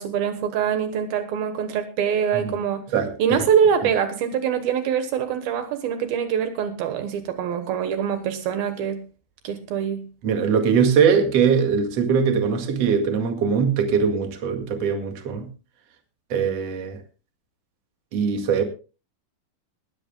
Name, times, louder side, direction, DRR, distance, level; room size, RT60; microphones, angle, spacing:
voice 1, 0.0-2.8 3.2-9.0 9.4-10.1, right 8 dB, 75° right, 3.0 m, -24 dB
voice 2, 2.9-3.4 10.2-15.5 16.3-17.0 18.1-18.6, right 6 dB, 45° right, 2.8 m, -21 dB
20.0 x 15.5 x 2.2 m
omnidirectional pair, 4.3 m